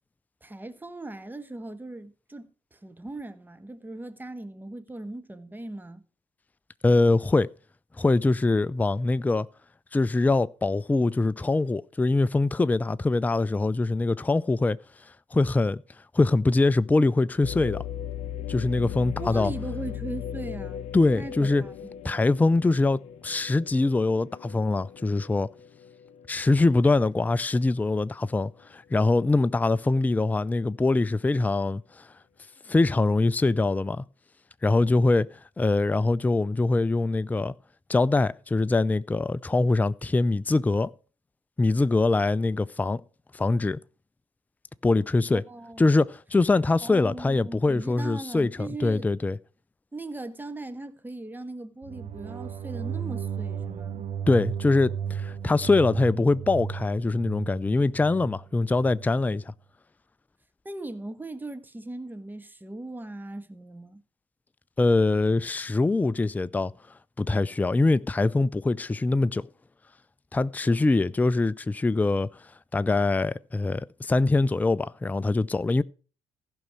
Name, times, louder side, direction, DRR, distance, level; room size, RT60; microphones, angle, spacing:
voice 1, 0.4-6.0 19.2-20.8 21.1-21.9 45.3-45.9 46.8-49.1 49.9-54.1 60.6-64.0, right 2 dB, 15° right, 1.4 m, -39 dB
voice 2, 6.8-7.5 8.0-9.5 9.9-14.8 15.3-15.8 16.1-17.8 18.5-19.5 20.9-21.6 22.0-25.5 26.3-32.1 32.7-34.0 34.6-35.3 35.6-37.5 37.9-40.9 41.6-43.0 43.3-43.8 44.8-45.4 45.8-49.4 54.3-59.5 64.8-66.7 67.2-69.5 70.3-72.3 72.7-75.8, left 3 dB, 10° left, 0.4 m, -23 dB
sound 1, 17.4-27.4 27.8-27.9 28.6-29.0, left 10 dB, 60° left, 0.7 m, -38 dB
sound 2, 51.8-59.1, right 8 dB, 50° right, 0.9 m, -34 dB
15.0 x 5.5 x 6.2 m
hypercardioid pair, 50°, 13 cm